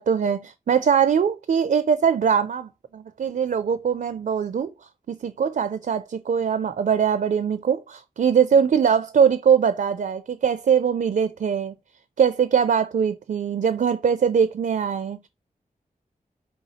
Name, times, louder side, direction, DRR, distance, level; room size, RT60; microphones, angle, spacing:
voice 1, 0.0-4.7 5.1-11.7 12.2-15.3, right 7 dB, 65° right, 0.4 m, -22 dB
4.5 x 2.8 x 4.1 m
wide cardioid pair, 90°, 15 cm